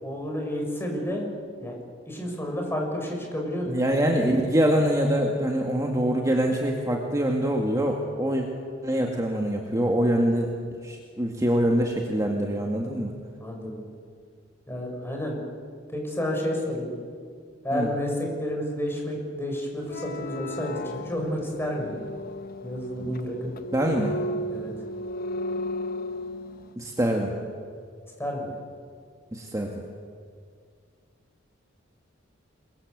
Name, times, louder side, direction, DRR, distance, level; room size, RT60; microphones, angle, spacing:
voice 1, 0.0-1.3 1.6-1.8 2.1-4.2 13.4-13.8 14.7-15.4 15.9-16.9 17.6-22.0 22.6-23.5 24.5-24.7 28.2-28.5, equal, 10° left, 1 dB, 6.2 m, -30 dB
voice 2, 3.7-8.5 8.8-10.5 10.8-13.1 17.7-17.9 23.0-23.1 23.7-24.1 26.8-27.3 29.3-29.8, equal, 15° right, 0 dB, 2.0 m, -24 dB
sound 1, 19.8-26.7, left 1 dB, 50° left, 0.9 m, -35 dB
28.5 x 22.0 x 8.1 m, 2.1 s
head